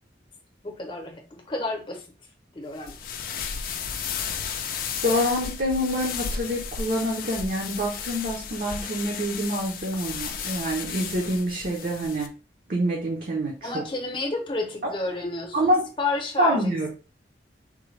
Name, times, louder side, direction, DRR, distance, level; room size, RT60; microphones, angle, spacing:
voice 1, 0.6-2.1 2.5-2.9 13.6-16.9, left 2 dB, 30° left, 3 dB, 0.8 m, -31 dB
sound 1, 2.8-12.3, left 7 dB, 50° left, 0.4 m, -34 dB
voice 2, 4.9-12.3 12.7-13.7 14.8-14.9 15.5-15.8 16.4-16.9, equal, 50° right, -2 dB, 0.7 m, -26 dB
3.6 x 2.2 x 3.2 m, 0.34 s
head